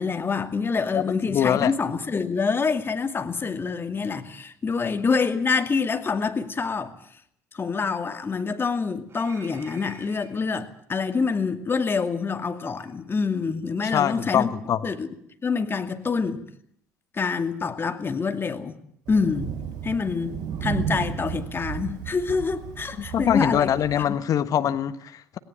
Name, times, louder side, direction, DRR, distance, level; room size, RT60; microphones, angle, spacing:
voice 1, 0.0-7.0 7.5-14.5 14.8-15.1 15.4-16.4 17.1-18.8 19.1-19.5 19.8-23.7 24.0-24.2, left 5 dB, 30° left, 2.4 m, -26 dB
voice 2, 1.3-1.7 13.9-14.8 23.1-25.4, left 10 dB, 50° left, 1.4 m, -23 dB
sound 1, 9.1-10.4 11.7-11.8 12.8-12.9, right 5 dB, 35° right, 6.8 m, -49 dB
Thunder, 19.1-24.1, right 8 dB, 60° right, 7.8 m, -33 dB
18.5 x 18.0 x 8.9 m
hypercardioid pair, 60°, 8 cm